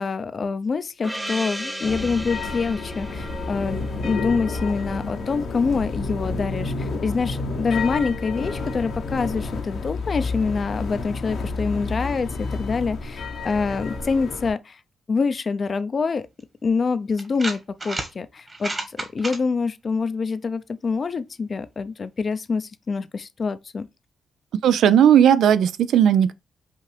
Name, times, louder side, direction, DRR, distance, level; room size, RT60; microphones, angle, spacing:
voice 1, 0.0-14.8 15.1-16.3 16.6-23.9, left 4 dB, 50° left, 0.5 m, -26 dB
Gong, 1.0-5.4, equal, 10° right, 1.0 m, -36 dB
sound 1, 1.8-14.5, left 3 dB, 75° left, 1.0 m, -30 dB
sound 2, 16.4-16.5 17.2-18.1 18.5-19.4, right 2 dB, 30° right, 1.4 m, -30 dB
voice 2, 24.6-26.3, right 9 dB, 80° right, 0.3 m, -16 dB
5.4 x 2.5 x 3.2 m
supercardioid pair, 55°, 0 cm